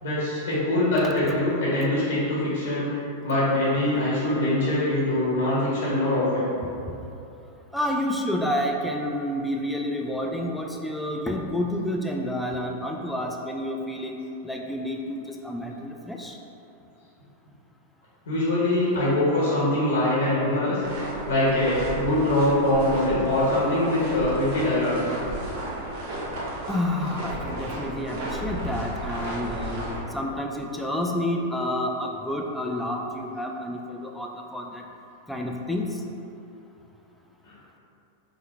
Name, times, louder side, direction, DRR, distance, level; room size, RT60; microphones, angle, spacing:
voice 1, 0.0-2.9 3.2-6.5 18.3-20.8 21.3-25.0, left 1 dB, 75° left, -9 dB, 1.0 m, -23 dB
voice 2, 7.7-14.1 14.4-16.4 26.7-34.8 35.3-36.0, left 1 dB, 5° left, 1 dB, 0.3 m, -29 dB
sound 1, 20.8-30.0, right 1 dB, 50° right, 0.9 m, -33 dB
3.7 x 2.1 x 3.3 m, 2.8 s
hypercardioid pair, 100°, 0 cm